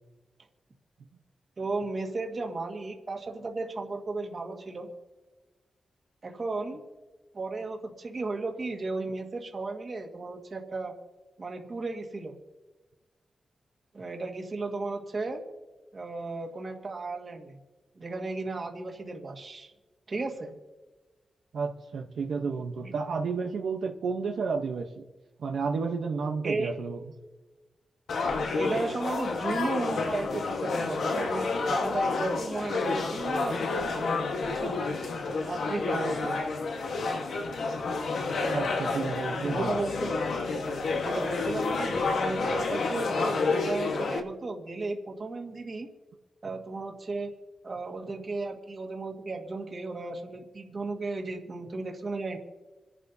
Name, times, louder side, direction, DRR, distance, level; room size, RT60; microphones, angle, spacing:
voice 1, 1.6-4.9 6.2-6.8 7.3-10.9 11.4-12.4 13.9-15.4 15.9-17.6 18.0-19.7 20.1-20.5 22.8-22.9 26.4-26.7 28.5-34.7 35.5-36.4 39.4-40.2 40.9-45.9 46.4-47.3 47.6-52.4, right 3 dB, 35° right, 2 dB, 1.8 m, -35 dB
voice 2, 21.5-25.0 25.4-27.0 38.5-39.8 48.2-48.3, right 5 dB, 85° right, 2 dB, 0.9 m, -31 dB
sound 1, 28.1-44.2, left 3 dB, 90° left, 1.4 m, -29 dB
28.0 x 11.0 x 2.8 m, 1.2 s
wide cardioid pair, 165°, 0 cm